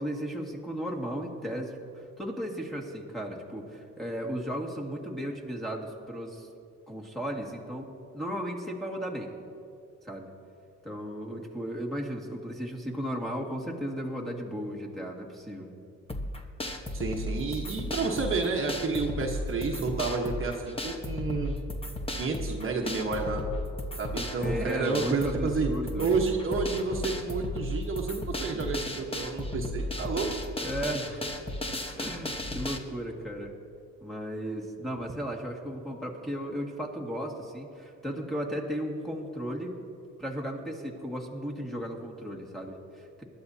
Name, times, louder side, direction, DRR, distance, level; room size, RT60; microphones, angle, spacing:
voice 1, 0.0-1.8 2.2-6.5 6.9-7.9 8.1-9.3 10.0-10.3 10.8-15.7 24.4-26.1 30.6-31.3 32.0-33.5 34.0-39.7 40.2-43.2, equal, ahead, -3 dB, 2.0 m, -35 dB
sound 1, 16.1-32.8, left 1 dB, 20° left, 1.2 m, -35 dB
voice 2, 16.9-21.5 22.1-23.4 24.0-25.7 26.0-30.3, right 4 dB, 45° right, 0 dB, 1.3 m, -30 dB
20.5 x 12.0 x 2.8 m, 2.5 s
cardioid pair, 90°, 30 cm